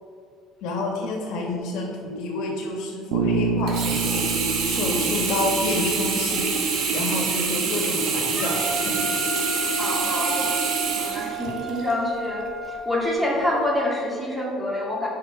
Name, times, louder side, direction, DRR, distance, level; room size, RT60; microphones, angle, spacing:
voice 1, 0.6-4.3 4.6-6.4 6.9-9.3, left 2 dB, 75° left, 1 dB, 1.9 m, -29 dB
Bass guitar, 3.1-7.0, right 5 dB, 85° right, 1.1 m, -28 dB
Sink (filling or washing), 3.7-11.9 12.5-12.6, right 4 dB, 60° right, 1.7 m, -26 dB
Wind instrument woodwind instrument, 8.4-12.8, right 3 dB, 30° right, 2.3 m, -32 dB
voice 2, 9.8-10.5 11.0-15.1, left 1 dB, 5° right, -3 dB, 2.2 m, -26 dB
9.9 x 5.9 x 5.0 m, 2.4 s
cardioid pair, 120°, 0 cm